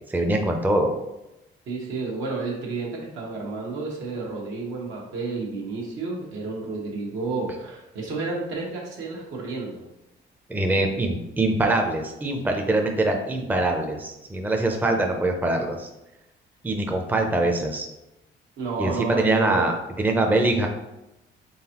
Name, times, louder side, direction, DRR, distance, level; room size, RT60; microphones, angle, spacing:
voice 1, 0.1-0.9 10.5-15.9 16.6-17.9 18.8-20.7, right 2 dB, 10° right, 3 dB, 0.5 m, -23 dB
voice 2, 1.7-9.8 14.7-15.3 18.6-19.7, right 3 dB, 80° right, -2 dB, 1.2 m, -31 dB
3.9 x 3.5 x 2.9 m, 0.91 s
cardioid pair, 90°, 20 cm